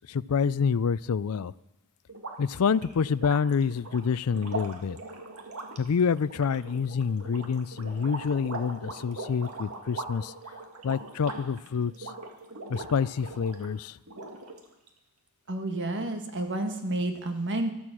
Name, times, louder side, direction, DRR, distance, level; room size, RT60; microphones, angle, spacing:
voice 1, 0.1-1.5 2.4-5.0 5.8-10.3 10.8-11.9 12.7-13.9, left 6 dB, 75° left, 19 dB, 0.4 m, -27 dB
sound 1, 2.1-13.7 14.1-14.9, right 3 dB, 75° right, 2.0 m, -41 dB
voice 2, 15.5-17.7, right 1 dB, 55° right, 6 dB, 1.7 m, -30 dB
15.0 x 13.0 x 6.1 m, 0.88 s
head